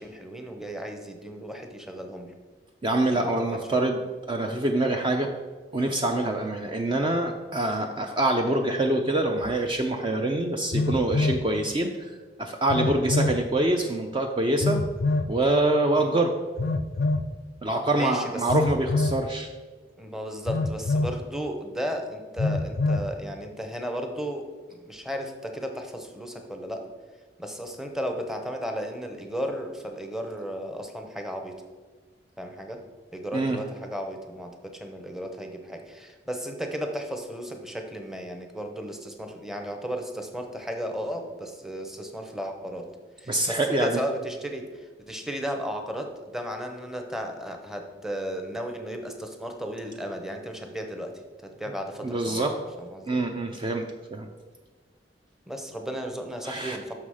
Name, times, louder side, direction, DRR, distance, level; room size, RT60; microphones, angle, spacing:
voice 1, 0.0-2.3 3.1-3.3 3.7-3.9 15.9-16.2 17.9-18.5 20.0-26.9 27.4-31.6 32.4-32.8 33.1-42.9 43.2-51.1 51.4-52.5 52.8-53.2 55.5-56.9, equal, 5° right, 4 dB, 0.8 m, -34 dB
voice 2, 2.8-4.0 4.3-5.3 5.7-12.1 12.4-14.8 15.3-16.4 17.6-19.5 33.3-33.6 43.3-44.0 52.0-52.6 53.1-53.9 54.1-54.3 56.4-56.8, right 2 dB, 25° right, 3 dB, 0.5 m, -25 dB
Telephone, 9.4-9.5 10.7-11.5 12.7-13.4 14.6-15.3 16.6-17.3 18.5-19.2 20.5-21.2 22.4-23.1, left 2 dB, 60° left, 0.4 m, -25 dB
6.2 x 5.8 x 4.8 m, 1.3 s
head